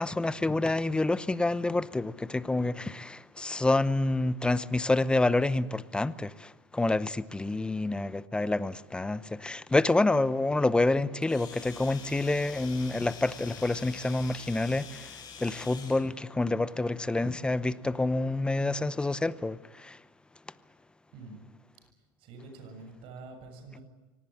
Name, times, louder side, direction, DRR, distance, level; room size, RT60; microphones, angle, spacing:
voice 1, 0.0-20.0, left 2 dB, 10° left, 0.8 m, -28 dB
Domestic sounds home sounds, 11.2-16.1, left 7 dB, 40° left, 6.0 m, -46 dB
voice 2, 21.9-23.8, right 3 dB, 55° right, 6.9 m, -47 dB
24.0 x 18.5 x 8.6 m
supercardioid pair, 115°, 11 cm